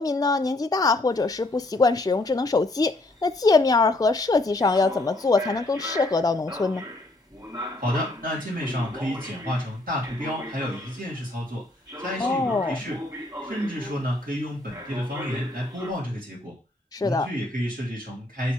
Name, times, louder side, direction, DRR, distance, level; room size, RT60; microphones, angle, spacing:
voice 1, 0.0-2.9 3.2-6.8 12.2-12.8 16.9-17.3, left 3 dB, 25° left, 0.4 m, -22 dB
sound 1, 1.1-11.3 11.9-14.3 14.7-15.9, equal, 25° right, 2.0 m, -39 dB
voice 2, 7.8-11.6 12.0-13.0 13.4-16.5 17.0-18.5, equal, 90° right, 3.2 m, -30 dB
6.5 x 4.2 x 4.8 m
wide cardioid pair, 40°, 14 cm